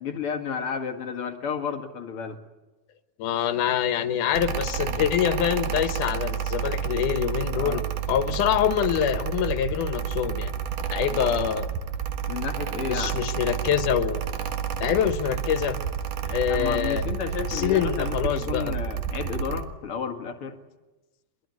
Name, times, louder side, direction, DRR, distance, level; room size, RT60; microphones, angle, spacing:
voice 1, 0.0-2.4 7.5-7.8 11.1-11.2 12.3-13.1 16.5-20.6, left 6 dB, 50° left, 4 dB, 2.6 m, -32 dB
voice 2, 3.2-7.8 8.1-10.5 10.9-11.7 12.9-14.2 14.8-15.8 16.2-17.0 17.5-18.8, left 9 dB, 85° left, 10 dB, 2.7 m, -25 dB
Mechanical fan, 4.3-19.6, right 8 dB, 85° right, 3.0 m, -30 dB
22.0 x 22.0 x 9.5 m, 1.1 s
omnidirectional pair, 3.5 m